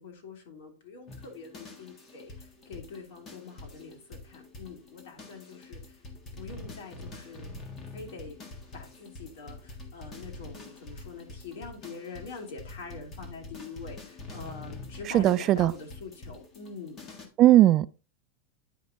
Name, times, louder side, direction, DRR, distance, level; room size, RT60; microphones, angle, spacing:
voice 1, 0.0-5.8 6.3-7.5 7.9-8.4 8.7-17.0, left 4 dB, 65° left, 3.0 m, -44 dB
sound 1, 1.1-17.3, left 2 dB, 25° left, 1.6 m, -46 dB
voice 2, 15.1-15.7 17.4-17.9, right 14 dB, 35° right, 0.3 m, -18 dB
10.0 x 5.3 x 2.8 m
supercardioid pair, 150°, 0 cm